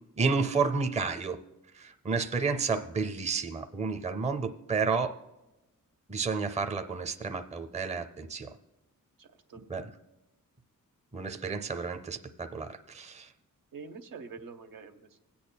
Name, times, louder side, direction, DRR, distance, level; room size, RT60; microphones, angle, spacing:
voice 1, 0.2-1.4 1.7-5.2 6.1-8.5 9.7-9.9 11.1-13.3, right 4 dB, 20° right, 7 dB, 0.6 m, -31 dB
voice 2, 9.2-9.6 13.7-15.2, right 5 dB, 80° right, 5 dB, 0.9 m, -46 dB
25.0 x 8.5 x 2.2 m, 1.0 s
wide cardioid pair, 100°, 33 cm